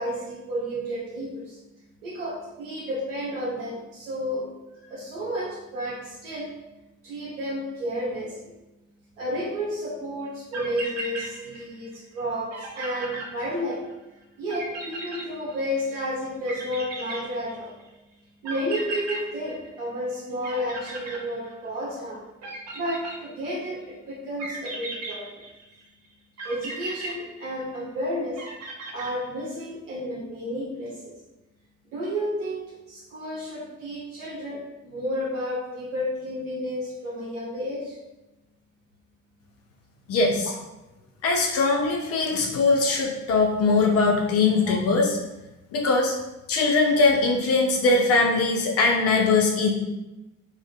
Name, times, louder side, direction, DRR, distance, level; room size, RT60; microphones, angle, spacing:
voice 1, 0.0-1.6 2.0-4.5 4.9-6.5 7.0-8.5 9.2-13.8 14.4-17.7 18.4-22.2 22.7-25.4 26.4-28.4 28.9-31.1 31.9-38.0 44.7-44.8, equal, 70° right, -5 dB, 0.9 m, -31 dB
sound 1, 10.3-10.4 10.5-11.9 12.2-12.3 12.5-13.9 14.5-15.9 16.5-17.8 18.4-20.1 20.4-21.8 22.4-23.6 24.4-25.8 26.4-27.9 28.4-29.6, right 2 dB, 40° right, 0.7 m, -36 dB
voice 2, 40.1-40.5 41.2-45.2 45.7-46.1 46.5-49.7, left 3 dB, 40° left, 1 dB, 0.5 m, -21 dB
2.5 x 2.1 x 2.4 m, 0.98 s
figure-of-eight pair, 50°, 40 cm